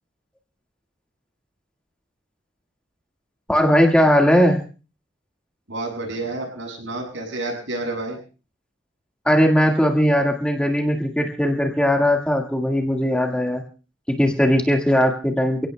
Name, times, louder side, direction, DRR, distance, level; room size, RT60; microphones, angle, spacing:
voice 1, 3.5-4.6 9.3-13.6 14.1-15.7, equal, 5° left, 1 dB, 1.7 m, -19 dB
voice 2, 5.7-8.2, right 2 dB, 80° right, 0 dB, 7.5 m, -29 dB
30.0 x 17.0 x 2.3 m, 0.36 s
head